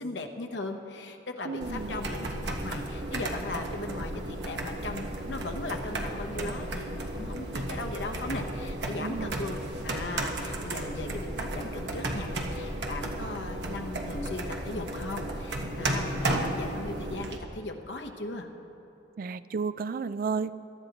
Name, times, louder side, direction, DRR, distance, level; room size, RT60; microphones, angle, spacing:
voice 1, 0.0-18.5, left 2 dB, 75° left, 5 dB, 1.0 m, -38 dB
voice 2, 1.4-2.0 9.0-9.3 19.2-20.5, right 5 dB, 50° right, 15 dB, 0.3 m, -32 dB
sound 1, 1.6-17.4, right 1 dB, 70° right, 1.2 m, -34 dB
22.0 x 12.0 x 3.0 m, 3.0 s
head